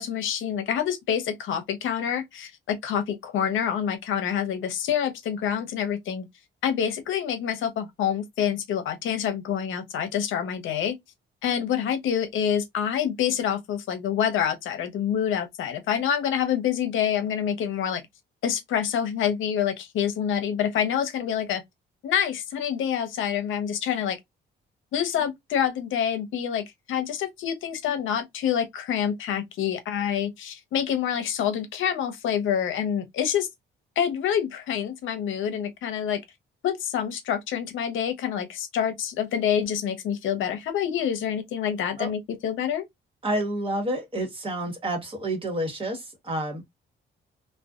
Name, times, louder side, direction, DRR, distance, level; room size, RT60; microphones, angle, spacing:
voice 1, 0.0-6.3 6.6-11.0 11.4-18.0 18.4-21.6 22.0-24.2 24.9-33.5 34.0-36.2 36.6-42.8, left 9 dB, 80° left, 0.7 m, -27 dB
voice 2, 43.2-46.7, right 1 dB, 25° right, 1.2 m, -29 dB
2.5 x 2.2 x 2.3 m
cardioid pair, 90°, 20 cm